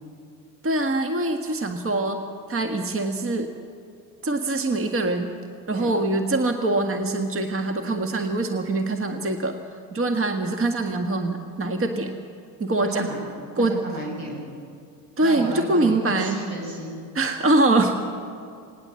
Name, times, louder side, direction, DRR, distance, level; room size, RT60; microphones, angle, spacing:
voice 1, 0.6-2.2 2.5-3.5 4.2-5.3 5.7-9.6 9.9-12.1 12.6-13.1 13.6-13.8 15.2-16.4 17.1-18.0, right 2 dB, 25° right, 5 dB, 1.8 m, -23 dB
voice 2, 12.8-13.3 13.6-14.4 15.2-16.9, right 1 dB, 80° right, -1 dB, 6.9 m, -32 dB
19.0 x 18.5 x 7.7 m, 2.3 s
hypercardioid pair, 70°, 48 cm